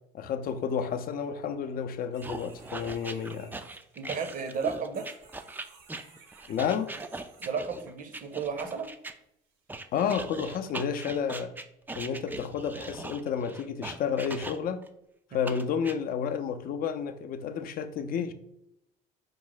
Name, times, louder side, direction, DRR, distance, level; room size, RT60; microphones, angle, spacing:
voice 1, 0.1-3.5 6.5-6.9 9.9-11.5 11.9-14.8 15.3-18.3, left 7 dB, 50° left, 0.5 m, -31 dB
sound 1, 2.1-7.9 8.3-8.8 9.5-9.6 10.1-10.2, right 5 dB, 75° right, 0.8 m, -56 dB
sound 2, 2.2-9.1 9.7-14.9 15.4-15.9, right 2 dB, 10° right, 0.3 m, -40 dB
voice 2, 4.0-5.1 7.4-8.9 15.3-15.5, right 5 dB, 45° right, 0.6 m, -33 dB
5.0 x 2.1 x 3.9 m
supercardioid pair, 75°, 20 cm